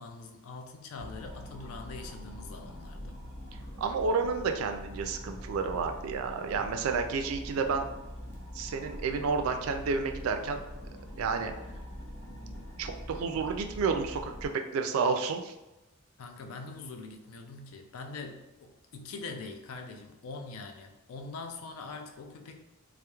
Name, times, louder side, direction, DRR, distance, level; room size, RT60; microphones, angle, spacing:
voice 1, 0.0-3.1 16.2-22.6, left 3 dB, 85° left, 5 dB, 0.4 m, -43 dB
sound 1, 1.0-14.5, equal, 55° left, 0.7 m, -43 dB
voice 2, 3.8-7.9 8.5-10.6 11.2-11.5 12.8-15.5, right 5 dB, 80° right, 6 dB, 0.3 m, -30 dB
2.9 x 2.0 x 2.2 m, 0.97 s
head